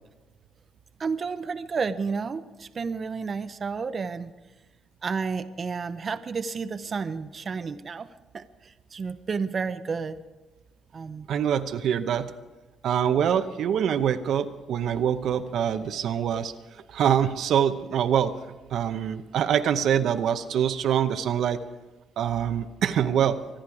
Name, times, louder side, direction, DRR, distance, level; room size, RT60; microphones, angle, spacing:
voice 1, 1.0-4.3 5.0-8.1 8.3-10.2 10.9-11.3, right 5 dB, 40° right, 10 dB, 0.7 m, -31 dB
voice 2, 11.3-12.3 12.8-16.5 16.9-18.3 18.7-21.6 22.2-23.4, right 9 dB, 75° right, 9 dB, 0.8 m, -24 dB
25.0 x 10.0 x 4.9 m, 1.1 s
cardioid pair, 90°, 0 cm